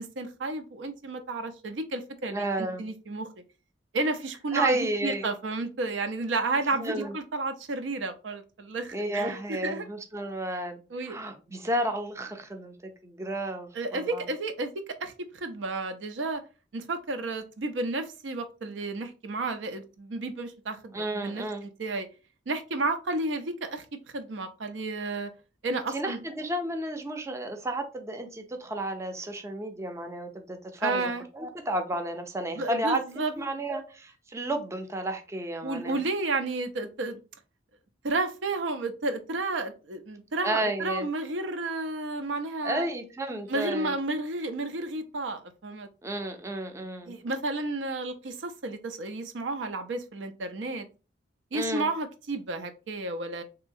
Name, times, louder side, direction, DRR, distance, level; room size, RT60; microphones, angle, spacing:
voice 1, 0.0-3.3 3.9-9.9 10.9-11.2 13.7-16.4 16.7-22.1 22.5-23.9 24.1-25.3 25.6-26.2 30.8-31.2 32.6-33.3 35.6-37.2 38.0-42.9 43.5-45.9 47.1-50.9 51.5-53.4, right 2 dB, 85° right, 8 dB, 0.5 m, -32 dB
voice 2, 2.3-2.8 4.5-5.3 6.7-7.1 8.9-14.3 20.9-21.6 25.9-36.0 40.4-41.1 42.6-44.0 46.0-47.2 51.5-51.9, right 1 dB, 15° right, 5 dB, 0.4 m, -32 dB
3.1 x 2.8 x 2.6 m, 0.32 s
head